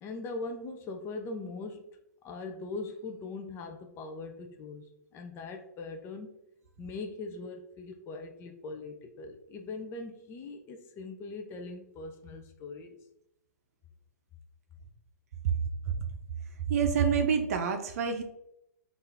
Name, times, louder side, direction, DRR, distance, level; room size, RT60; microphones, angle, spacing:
voice 1, 0.0-1.9 2.2-6.3 6.8-13.0, left 3 dB, 25° left, 4 dB, 0.5 m, -41 dB
voice 2, 16.7-18.2, right 6 dB, 55° right, 5 dB, 0.6 m, -27 dB
5.4 x 2.6 x 3.4 m, 0.80 s
hypercardioid pair, 120°, 9 cm